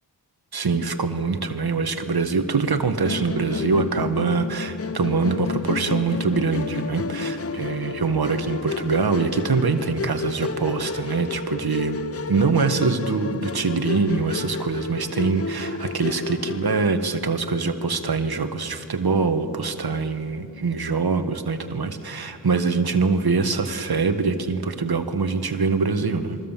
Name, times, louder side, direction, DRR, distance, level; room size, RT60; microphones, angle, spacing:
voice 1, 0.5-12.0 12.3-26.4, right 4 dB, 60° right, 7 dB, 1.8 m, -24 dB
Musical instrument, 3.1-16.9, left 5 dB, 35° left, 0.6 m, -31 dB
26.5 x 23.5 x 7.5 m, 2.6 s
cardioid pair, 55°, 42 cm